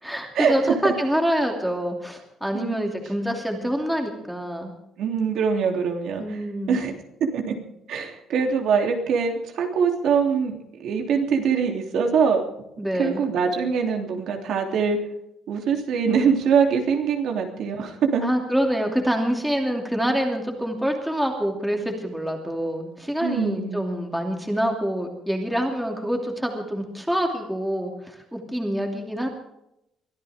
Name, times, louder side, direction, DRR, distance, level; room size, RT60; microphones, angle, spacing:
voice 1, 0.0-4.7 6.2-6.8 12.8-13.2 18.2-29.3, equal, ahead, 1 dB, 2.8 m, -26 dB
voice 2, 5.0-6.4 6.7-7.0 7.3-7.5 7.9-12.4 13.0-15.0 15.5-18.2 23.2-23.9, right 6 dB, 65° right, 2 dB, 3.1 m, -23 dB
23.5 x 14.5 x 3.6 m, 0.82 s
cardioid pair, 155°, 0 cm